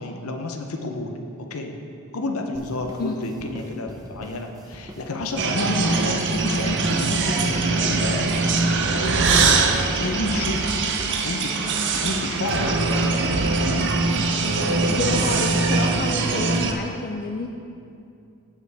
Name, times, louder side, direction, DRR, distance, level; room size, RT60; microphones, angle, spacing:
voice 1, 0.0-1.7 2.1-8.4 8.9-10.7 11.2-11.5 12.0-13.9, left 2 dB, 70° left, 4 dB, 0.8 m, -30 dB
sound 1, 2.5-11.4, equal, 15° right, 0.7 m, -43 dB
sound 2, 5.4-16.7, right 3 dB, 55° right, 0.6 m, -22 dB
voice 2, 14.9-17.5, left 3 dB, 40° left, 2 dB, 0.4 m, -29 dB
14.5 x 5.1 x 3.4 m, 2.5 s
head